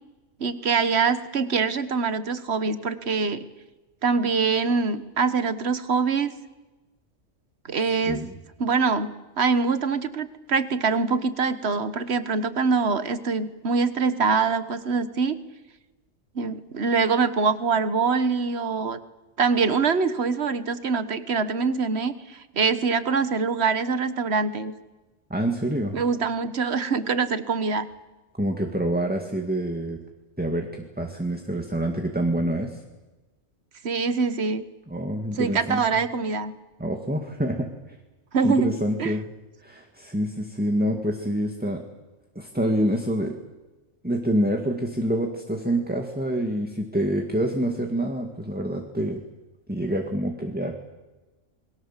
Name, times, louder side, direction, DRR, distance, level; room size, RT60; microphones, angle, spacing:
voice 1, 0.4-3.5 4.0-6.3 7.7-8.2 8.6-15.4 16.3-19.0 19.4-24.7 25.9-27.9 33.8-34.6 35.4-36.5 38.3-38.7 39.0-39.1, right 5 dB, 55° right, 12 dB, 1.5 m, -24 dB
voice 2, 25.3-26.0 28.4-30.0 30.4-32.8 34.9-35.8 36.8-38.0 38.4-39.2 39.6-41.8 42.4-43.4 44.0-49.2 49.7-50.7, right 1 dB, 5° right, 3 dB, 2.0 m, -26 dB
29.0 x 22.5 x 7.4 m, 1.1 s
omnidirectional pair, 1.3 m